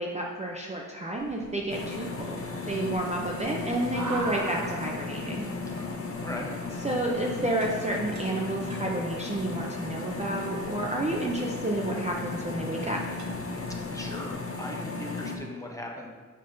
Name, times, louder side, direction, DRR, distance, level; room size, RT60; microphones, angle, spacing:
voice 1, 0.0-2.4 2.7-5.5 6.8-13.0, right 1 dB, 20° right, -1 dB, 0.5 m, -30 dB
sound 1, 1.1-14.4, right 1 dB, 55° right, 1.1 m, -45 dB
sound 2, 1.7-15.4, left 3 dB, 40° left, 0.7 m, -35 dB
voice 2, 5.7-6.5 13.9-16.1, left 1 dB, 10° left, -1 dB, 0.8 m, -39 dB
8.6 x 5.2 x 2.6 m, 1.5 s
wide cardioid pair, 145°, 34 cm